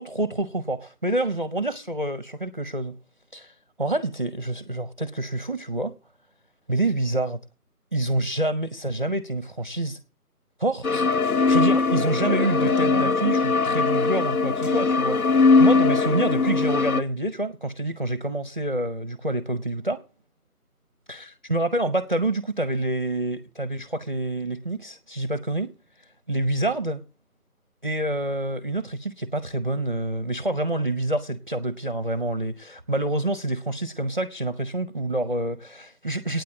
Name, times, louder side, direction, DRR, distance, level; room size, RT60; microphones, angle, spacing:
voice 1, 0.0-3.0 3.3-5.9 6.7-7.4 7.9-10.0 10.6-20.0 21.1-25.7 26.3-27.0 27.8-36.4, right 1 dB, 40° right, 0.6 m, -27 dB
sound 1, 10.8-17.0, left 4 dB, 70° left, 0.9 m, -20 dB
9.2 x 7.4 x 8.8 m
figure-of-eight pair, 170°, 46 cm